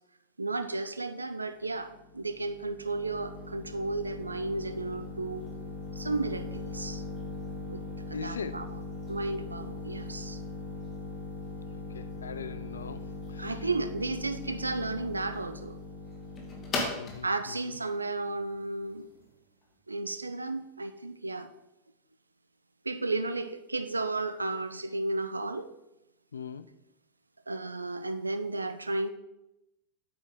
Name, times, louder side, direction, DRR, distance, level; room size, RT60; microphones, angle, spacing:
voice 1, 0.4-5.4 6.0-7.0 7.7-8.8 9.1-10.4 13.4-15.8 17.2-19.1 19.9-21.5 22.8-25.7 27.5-29.1, right 2 dB, 80° right, 10 dB, 0.6 m, -33 dB
sound 1, 1.6-19.3, left 3 dB, 25° left, 2.1 m, -40 dB
voice 2, 8.1-8.7 11.7-13.5 17.0-17.8 26.3-26.7, left 6 dB, 70° left, 14 dB, 0.5 m, -41 dB
8.7 x 8.4 x 3.8 m, 0.91 s
figure-of-eight pair, 90°, 0 cm